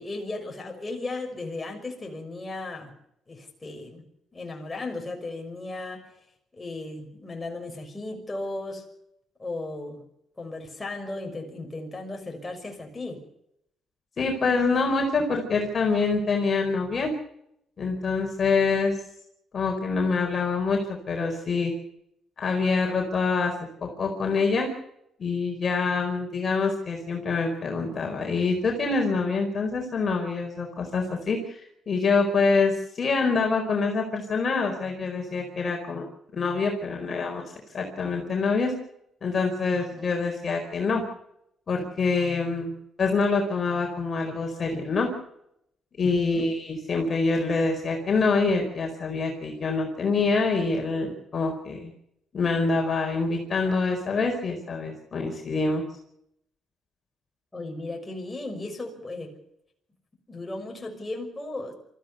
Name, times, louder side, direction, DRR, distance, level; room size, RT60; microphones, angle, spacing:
voice 1, 0.0-2.9 3.3-4.0 4.3-6.0 6.5-8.8 9.4-10.0 10.4-13.2 39.7-40.0 46.0-46.5 57.5-59.3 60.3-61.7, left 2 dB, 20° left, 2 dB, 6.0 m, -36 dB
voice 2, 14.2-17.1 17.8-19.0 19.5-21.7 22.4-23.5 23.8-24.7 25.2-36.0 36.3-37.4 37.7-38.7 39.2-41.0 41.7-42.7 43.0-45.1 46.0-51.9 52.3-55.8, left 4 dB, 40° left, 1 dB, 4.6 m, -25 dB
24.0 x 15.0 x 8.1 m, 0.77 s
cardioid pair, 90°, 0 cm